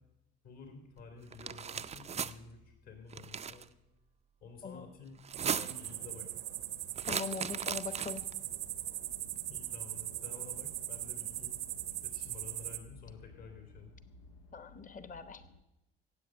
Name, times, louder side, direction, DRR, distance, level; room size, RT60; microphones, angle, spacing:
voice 1, 0.4-3.7 4.4-6.4 9.5-11.6 12.0-13.9, left 4 dB, 65° left, 4 dB, 3.0 m, -51 dB
sound 1, 1.3-2.3 3.1-3.6 5.2-5.9 7.0-8.3, right 7 dB, 20° right, 0.5 m, -37 dB
sound 2, 5.2-15.6, left 3 dB, 80° left, 0.9 m, -58 dB
sound 3, 5.3-12.8, right 14 dB, 60° right, 0.8 m, -40 dB
voice 2, 7.1-8.2 14.5-15.4, left 5 dB, 25° left, 13 dB, 1.0 m, -41 dB
17.0 x 8.0 x 6.3 m, 0.94 s
figure-of-eight pair, 50°, 29 cm